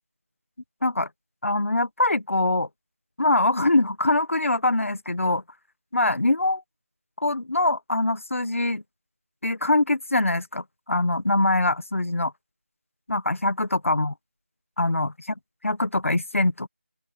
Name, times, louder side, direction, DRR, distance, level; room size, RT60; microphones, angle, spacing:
voice 1, 1.4-2.7 3.2-5.4 5.9-6.6 7.2-8.8 9.4-12.3 13.1-14.1 14.8-15.1 15.6-16.7, left 2 dB, 75° left, 1.4 m, -23 dB
open air
figure-of-eight pair, 180°, 7 cm